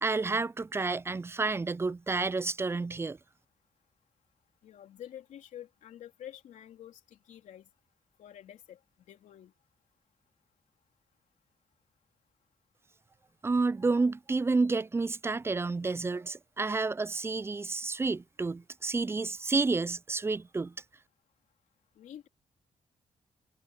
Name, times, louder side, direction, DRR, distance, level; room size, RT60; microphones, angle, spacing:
voice 1, 0.0-3.2 13.4-20.7, right 3 dB, 20° right, 0.4 m, -30 dB
voice 2, 4.6-7.7 8.2-8.8 9.1-9.5 22.0-22.3, left 11 dB, 85° left, 3.2 m, -48 dB
cardioid pair, 65°, 12 cm